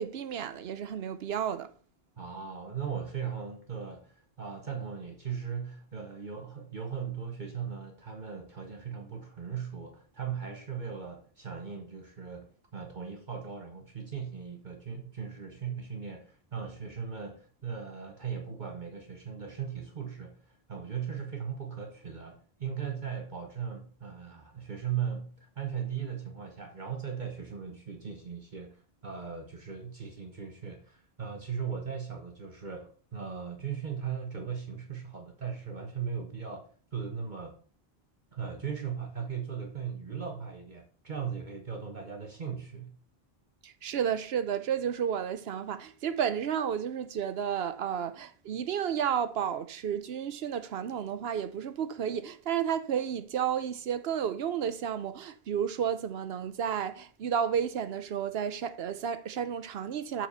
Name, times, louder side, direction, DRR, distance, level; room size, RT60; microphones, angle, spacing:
voice 1, 0.0-1.7 43.6-60.3, right 8 dB, 75° right, 0.9 m, -32 dB
voice 2, 2.2-37.5 38.3-43.0, right 7 dB, 50° right, 1.1 m, -38 dB
7.5 x 4.4 x 5.5 m
omnidirectional pair, 1.0 m